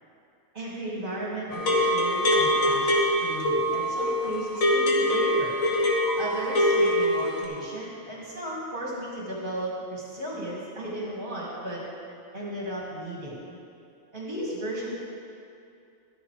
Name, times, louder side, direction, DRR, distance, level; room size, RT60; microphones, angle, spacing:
voice 1, 0.5-2.9 3.2-5.6 6.2-11.8 12.3-13.4 14.1-15.0, right 1 dB, 40° right, -6 dB, 2.4 m, -35 dB
sound 1, 1.5-7.4, left 1 dB, 85° left, 1.9 m, -24 dB
13.5 x 12.5 x 3.3 m, 2.5 s
omnidirectional pair, 1.4 m